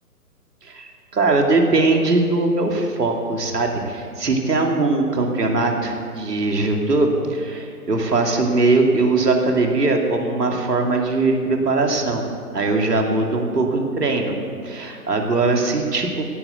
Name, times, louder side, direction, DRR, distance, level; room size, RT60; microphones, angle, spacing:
voice 1, 0.6-12.2 12.5-14.3 14.6-16.2, right 3 dB, 85° right, 2 dB, 2.6 m, -20 dB
17.0 x 7.9 x 8.2 m, 2.1 s
hypercardioid pair, 145°, 47 cm